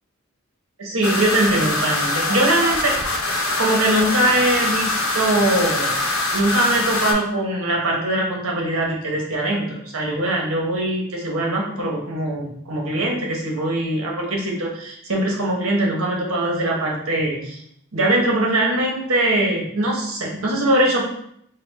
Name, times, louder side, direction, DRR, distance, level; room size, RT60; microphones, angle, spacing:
voice 1, 0.8-2.9 3.6-5.9 6.3-17.6 17.9-21.0, right 1 dB, 75° right, -1 dB, 1.0 m, -22 dB
sound 1, 1.0-7.1, left 2 dB, 85° left, 1.1 m, -23 dB
4.3 x 2.2 x 4.0 m, 0.71 s
head